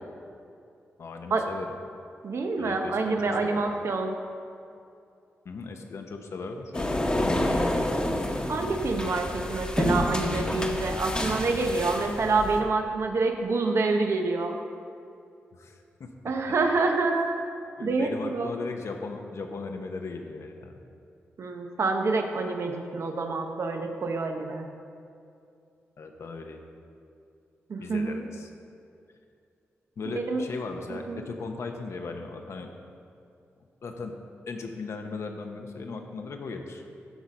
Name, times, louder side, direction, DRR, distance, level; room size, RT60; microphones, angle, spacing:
voice 1, 1.0-1.7 2.6-3.7 5.4-7.7 15.5-16.1 17.8-20.8 26.0-26.6 27.8-28.5 30.0-32.7 33.8-34.1 34.5-36.8, left 4 dB, 70° left, 4 dB, 0.9 m, -37 dB
voice 2, 2.2-4.2 8.5-14.6 16.2-17.4 17.8-18.5 21.4-24.7 27.7-28.2 30.2-30.4 30.9-31.2, right 3 dB, 65° right, 4 dB, 0.9 m, -27 dB
sound 1, 6.7-12.6, left 1 dB, 20° left, 1.1 m, -28 dB
12.0 x 4.2 x 5.2 m, 2.5 s
cardioid pair, 55°, 5 cm